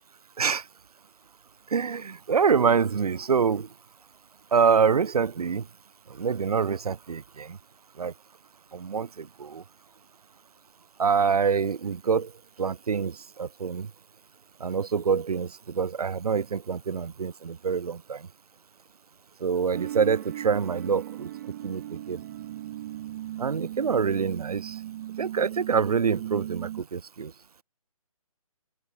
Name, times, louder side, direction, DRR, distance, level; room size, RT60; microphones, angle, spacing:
voice 1, 1.7-3.7 4.5-5.7 6.1-7.6 8.0-8.1 8.7-9.6 11.0-12.3 12.6-13.9 14.6-18.3 19.4-21.3 21.6-22.2 23.4-24.8 25.2-27.3, right 6 dB, 80° right, 0.8 m, -26 dB
sound 1, 19.7-26.8, right 13 dB, 30° right, 0.9 m, -37 dB
open air
hypercardioid pair, 150°, 19 cm